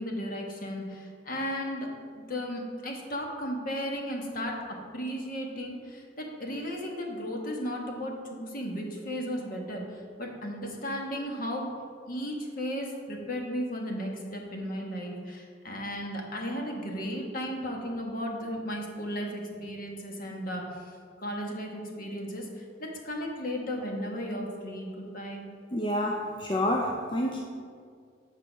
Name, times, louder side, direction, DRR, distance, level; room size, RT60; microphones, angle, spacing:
voice 1, 0.0-1.9 2.2-4.6 4.9-11.7 12.0-20.9 21.2-25.5, equal, 50° left, 1.3 m, -35 dB
voice 2, 25.7-27.4, left 1 dB, 25° left, 0.4 m, -28 dB
8.1 x 5.7 x 5.1 m
head